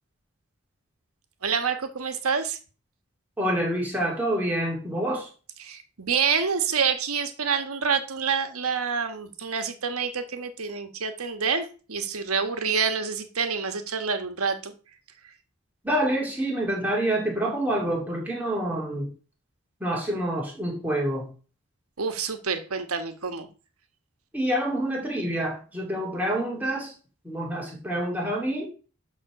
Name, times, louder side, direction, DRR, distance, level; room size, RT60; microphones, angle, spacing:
voice 1, 1.4-2.6 5.6-14.7 22.0-23.5, right 6 dB, 85° right, 8 dB, 1.4 m, -27 dB
voice 2, 3.4-5.3 15.8-19.1 19.8-21.3 24.3-26.9 27.2-28.7, right 1 dB, 5° right, -3 dB, 2.8 m, -27 dB
11.5 x 3.9 x 6.2 m, 0.37 s
head